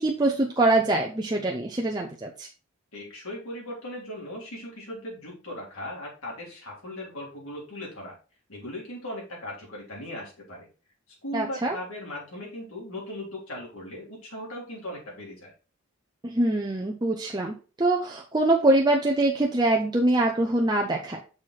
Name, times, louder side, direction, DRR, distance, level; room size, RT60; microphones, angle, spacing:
voice 1, 0.0-2.5 11.3-11.8 16.2-21.2, right 2 dB, 20° right, 1 dB, 0.6 m, -24 dB
voice 2, 2.9-8.1 8.5-10.7 11.2-15.5, left 1 dB, 85° left, -3 dB, 3.5 m, -38 dB
6.4 x 4.7 x 4.1 m, 0.35 s
head